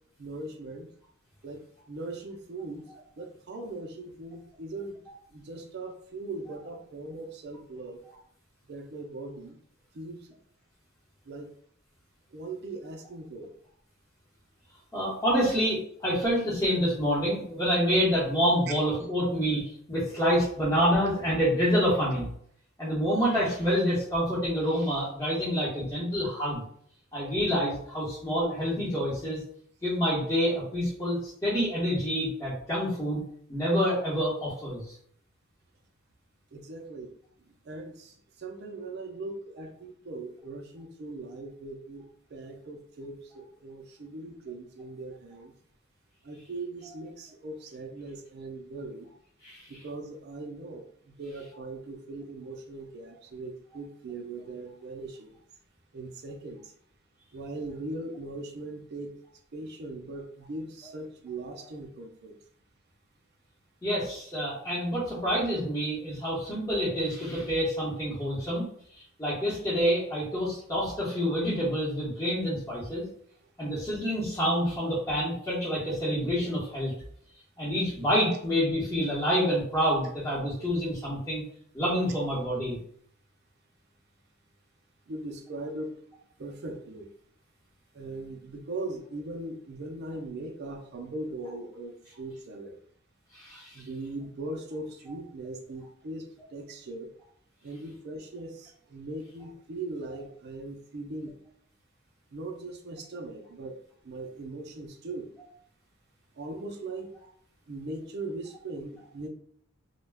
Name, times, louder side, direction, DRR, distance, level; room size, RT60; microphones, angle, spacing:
voice 1, 0.2-0.9 1.4-2.9 3.2-5.0 5.3-8.0 8.7-9.6 9.9-10.4 11.3-11.5 12.3-13.5 36.5-37.1 37.5-42.0 42.3-45.5 46.2-49.1 49.7-55.3 55.9-56.7 57.3-59.1 59.5-62.4 85.1-85.9 86.4-87.1 87.9-92.8 93.7-97.1 97.6-101.4 102.3-105.3 106.4-107.1 107.7-109.3, right 2 dB, 50° right, 3 dB, 0.4 m, -40 dB
voice 2, 14.9-22.3 22.8-26.6 27.1-29.4 29.8-33.2 33.5-34.9 49.4-49.7 63.8-68.6 68.9-73.0 73.6-76.9 77.6-81.4 81.7-82.8 93.3-93.8, equal, 15° left, -9 dB, 0.9 m, -27 dB
2.2 x 2.1 x 3.3 m, 0.62 s
head